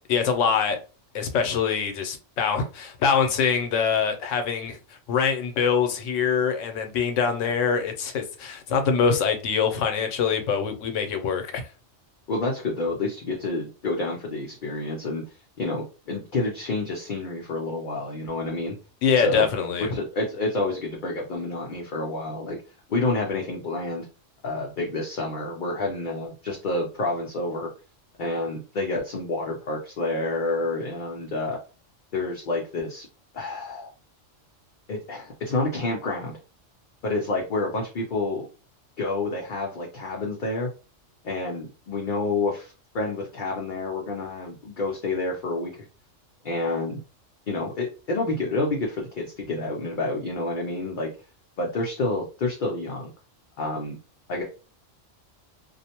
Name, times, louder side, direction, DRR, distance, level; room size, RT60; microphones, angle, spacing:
voice 1, 0.1-0.8 1.1-4.8 5.1-11.6 19.0-19.9, left 6 dB, 85° left, 1.0 m, -24 dB
voice 2, 12.3-15.2 15.6-18.8 19.2-19.5 19.8-22.6 22.9-24.0 24.4-27.7 28.2-31.6 32.1-33.1 33.3-33.9 34.9-36.4 37.0-38.5 39.0-40.7 41.2-45.9 46.4-47.0 47.5-51.1 51.6-53.1 53.6-54.0 54.3-54.4, left 2 dB, 55° left, 0.6 m, -29 dB
2.5 x 2.0 x 2.8 m
omnidirectional pair, 1.3 m